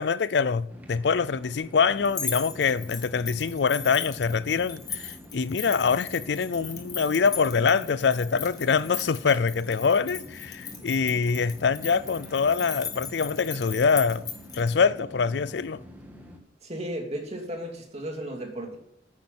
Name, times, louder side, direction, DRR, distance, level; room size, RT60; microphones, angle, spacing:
voice 1, 0.0-14.2 14.5-15.8, left 5 dB, 70° left, 0.5 m, -24 dB
sound 1, 0.7-16.4, equal, 10° right, 1.6 m, -46 dB
sound 2, 2.0-14.7, left 6 dB, 20° left, 1.5 m, -38 dB
voice 2, 16.6-18.8, right 1 dB, 35° right, 2.7 m, -34 dB
9.6 x 9.2 x 7.5 m
head